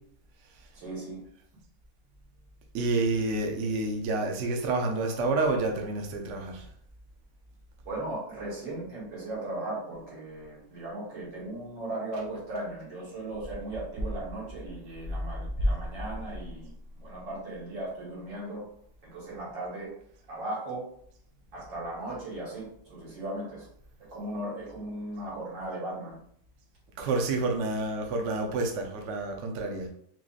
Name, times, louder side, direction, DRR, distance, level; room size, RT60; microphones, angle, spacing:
voice 1, 0.7-1.2 7.9-16.7 17.0-18.7 19.1-19.9 20.3-20.9 21.5-23.7 24.0-26.2, right 1 dB, 80° right, -5 dB, 2.2 m, -37 dB
voice 2, 2.7-6.7 12.1-12.2 15.6-15.7 27.0-29.9, right 2 dB, 65° right, 2 dB, 0.7 m, -28 dB
3.8 x 3.0 x 2.4 m, 0.66 s
omnidirectional pair, 2.0 m